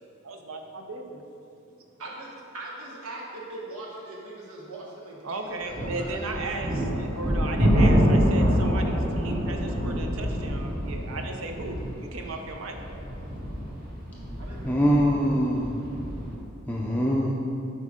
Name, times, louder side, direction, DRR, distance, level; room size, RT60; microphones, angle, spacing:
voice 1, 0.2-1.2 5.2-11.8 12.1-12.8, right 2 dB, 65° right, 4 dB, 0.7 m, -36 dB
voice 2, 2.0-2.3 2.5-6.4 12.9-13.3 14.4-14.7, right 2 dB, 85° right, -4 dB, 1.4 m, -41 dB
sound 1, 5.7-16.3, equal, 45° right, 1.2 m, -26 dB
voice 3, 14.6-15.9 16.7-17.3, equal, 10° left, -4 dB, 0.5 m, -23 dB
7.6 x 5.2 x 3.7 m, 2.5 s
head